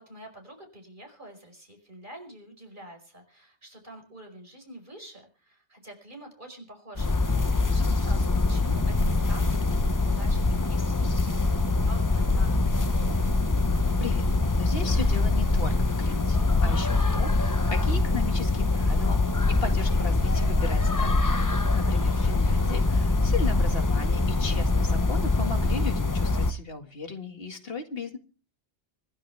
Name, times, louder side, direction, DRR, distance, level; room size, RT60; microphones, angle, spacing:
voice 1, 0.0-13.3 22.0-22.6, right 1 dB, 45° right, 3 dB, 5.6 m, -47 dB
sound 1, 7.0-26.5, left 3 dB, 20° left, 0.6 m, -24 dB
voice 2, 14.6-19.2 19.5-21.3 21.7-28.2, left 3 dB, 60° left, 4 dB, 2.3 m, -36 dB
25.5 x 11.0 x 3.5 m, 0.39 s
omnidirectional pair, 1.1 m